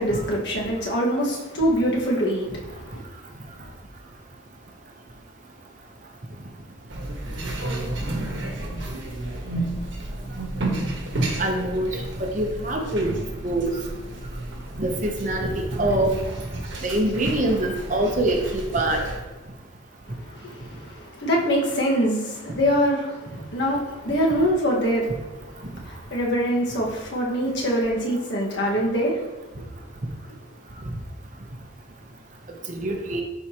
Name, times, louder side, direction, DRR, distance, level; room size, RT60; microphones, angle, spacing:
voice 1, 0.0-3.0 20.1-25.1 25.8-29.3, equal, 60° left, -3 dB, 1.6 m, -24 dB
sound 1, 6.9-19.2, right 1 dB, 70° right, 1.3 m, -32 dB
voice 2, 11.4-13.1 13.4-13.7 14.8-16.1 16.8-19.0 32.7-33.2, right 1 dB, 40° right, 2 dB, 0.8 m, -24 dB
11.0 x 4.7 x 2.9 m, 1.2 s
head